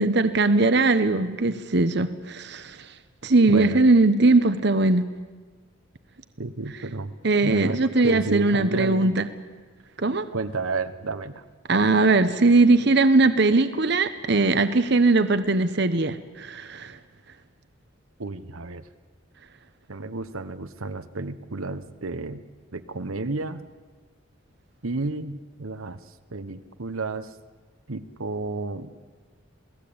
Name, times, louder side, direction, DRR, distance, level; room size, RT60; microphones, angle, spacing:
voice 1, 0.0-2.8 3.2-5.1 7.2-9.3 10.0-10.3 11.7-17.0, right 3 dB, 55° right, 10 dB, 1.0 m, -20 dB
voice 2, 3.5-3.8 6.4-7.1 7.4-7.8 8.0-9.1 10.3-11.4 18.2-18.8 19.9-22.4 22.7-23.6 24.8-26.0 26.3-27.3 27.9-28.9, right 3 dB, 85° right, 10 dB, 1.2 m, -31 dB
28.0 x 18.5 x 8.8 m, 1.4 s
head